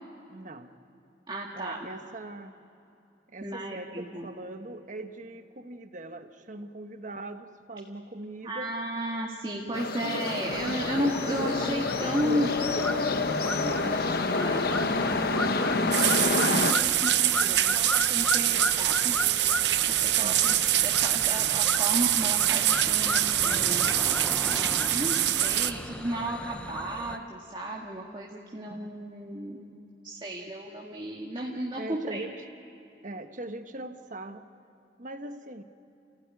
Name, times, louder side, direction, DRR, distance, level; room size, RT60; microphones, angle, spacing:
voice 1, 0.3-0.7 1.5-2.5 3.3-8.7 17.2-17.9 20.2-20.6 25.8-25.9 28.6-28.9 31.8-32.3 33.0-34.4 35.0-35.6, right 2 dB, 45° right, 8 dB, 1.2 m, -41 dB
voice 2, 1.3-1.8 3.4-4.3 8.4-12.7 13.1-15.8 16.5-19.2 19.9-23.8 24.7-29.6 30.0-32.3, equal, 25° right, -2 dB, 1.9 m, -34 dB
sound 1, 9.7-16.7, left 3 dB, 60° left, 1.1 m, -28 dB
sound 2, 10.5-27.2, left 1 dB, 5° left, 0.7 m, -36 dB
sound 3, 15.9-25.7, right 13 dB, 75° right, 0.8 m, -25 dB
29.5 x 16.0 x 9.6 m, 2.7 s
head